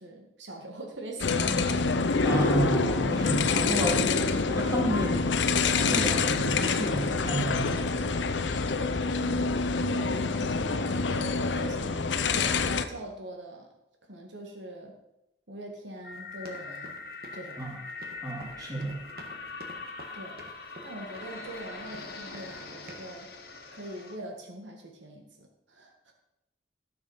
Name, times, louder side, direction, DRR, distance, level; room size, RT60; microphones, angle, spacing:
voice 1, 0.0-1.8 9.2-10.2 10.5-13.7 14.1-15.0 15.5-17.0 17.3-17.7 20.1-20.4 20.8-23.3 23.7-26.1, right 1 dB, 85° right, 2 dB, 1.7 m, -42 dB
sound 1, 1.2-12.9, left 4 dB, 85° left, 0.7 m, -26 dB
voice 2, 2.2-4.1 4.5-5.2 5.8-8.1 17.6-17.7 18.2-19.0, right 1 dB, 20° right, -2 dB, 2.4 m, -31 dB
sound 2, 16.0-24.2, left 3 dB, 55° left, 1.6 m, -42 dB
sound 3, 16.1-21.7 21.9-22.6 22.9-23.2, right 1 dB, 55° right, 1.5 m, -49 dB
13.0 x 7.0 x 5.5 m, 0.89 s
head